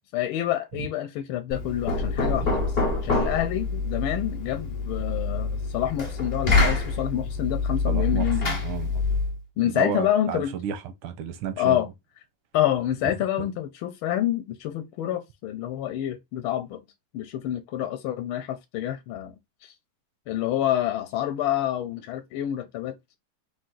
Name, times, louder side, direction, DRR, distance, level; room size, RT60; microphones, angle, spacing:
voice 1, 0.1-8.6 9.6-10.5 11.6-11.9 12.5-16.8 17.1-19.3 19.6-19.7 20.3-23.2, left 12 dB, 80° left, 1.4 m, -28 dB
Knock, 1.5-9.4, left 3 dB, 45° left, 0.5 m, -26 dB
voice 2, 7.9-9.1 9.6-11.9 13.4-13.5, right 8 dB, 85° right, 1.6 m, -32 dB
4.5 x 2.5 x 3.7 m
omnidirectional pair, 2.3 m